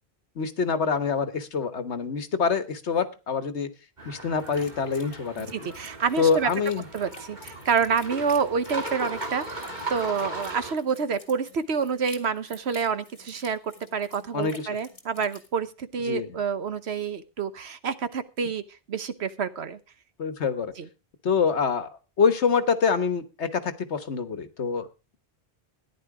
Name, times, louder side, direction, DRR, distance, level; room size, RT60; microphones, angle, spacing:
voice 1, 0.4-3.7 4.0-5.5 6.2-6.8 14.3-14.5 16.1-16.4 20.2-20.7 21.2-21.9 22.2-24.9, left 5 dB, 85° left, 11 dB, 1.6 m, -25 dB
sound 1, 4.0-10.7, right 2 dB, 45° right, 2.8 m, -37 dB
sound 2, 4.4-15.5, left 3 dB, 65° left, 2.6 m, -51 dB
voice 2, 5.5-6.5 6.9-18.6 18.9-19.8 20.8-20.9, right 6 dB, 75° right, 12 dB, 1.3 m, -28 dB
14.0 x 10.5 x 4.8 m, 0.31 s
omnidirectional pair, 1.1 m